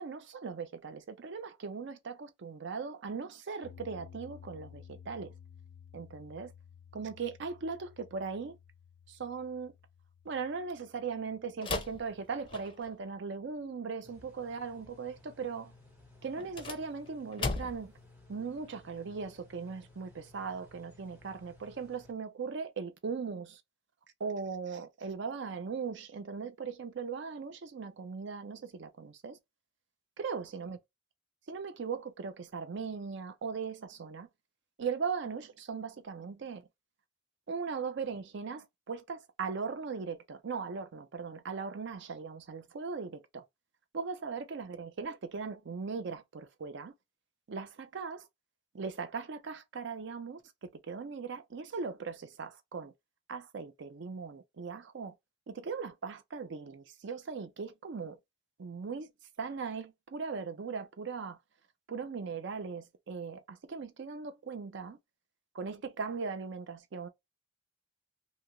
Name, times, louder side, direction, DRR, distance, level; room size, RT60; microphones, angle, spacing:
voice 1, 0.0-5.3 5.9-6.5 6.9-8.6 9.1-9.7 10.2-15.7 16.2-17.9 18.3-23.6 24.2-29.4 30.2-30.8 31.5-34.3 34.8-36.6 37.5-43.4 43.9-46.9 47.5-48.3 48.7-52.9 53.3-55.1 55.5-58.2 58.6-59.1 59.4-61.4 61.9-65.0 65.5-67.1, right 5 dB, 65° right, 0.5 m, -39 dB
sound 1, 3.6-13.9, left 8 dB, 80° left, 0.4 m, -55 dB
sound 2, 11.6-13.0 16.3-18.0, left 3 dB, 25° left, 0.5 m, -37 dB
sound 3, 14.0-22.1, left 2 dB, 10° right, 1.1 m, -58 dB
2.8 x 2.4 x 2.9 m
head